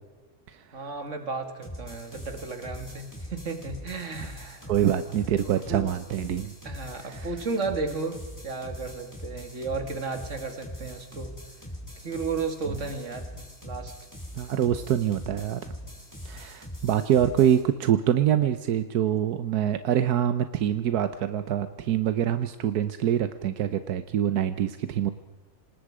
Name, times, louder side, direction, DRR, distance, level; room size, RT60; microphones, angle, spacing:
voice 1, 0.7-4.7 5.4-5.9 6.6-11.4 12.0-13.9, right 4 dB, 50° right, 7 dB, 2.5 m, -34 dB
sound 1, 1.6-17.6, left 1 dB, 10° left, 3.6 m, -42 dB
voice 2, 4.7-6.5 7.0-7.3 14.3-15.7 16.2-25.1, right 10 dB, 85° right, 11 dB, 1.4 m, -25 dB
26.5 x 20.0 x 4.9 m, 1.1 s
omnidirectional pair, 1.6 m